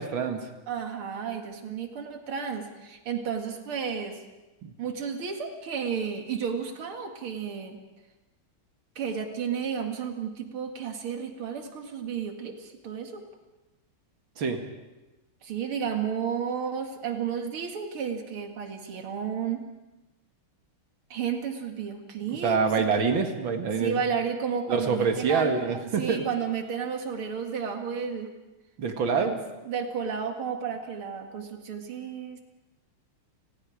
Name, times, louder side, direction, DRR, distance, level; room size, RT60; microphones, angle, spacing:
voice 1, 0.0-0.5 4.6-4.7 14.4-14.6 22.3-24.0 24.7-26.2 28.8-29.3, right 5 dB, 65° right, 5 dB, 2.7 m, -26 dB
voice 2, 0.7-4.2 4.8-7.8 9.0-13.2 15.4-19.6 21.1-23.1 23.7-28.3 29.2-29.4 29.7-32.4, right 7 dB, 85° right, 4 dB, 2.8 m, -32 dB
29.5 x 20.0 x 5.0 m, 1.1 s
omnidirectional pair, 2.3 m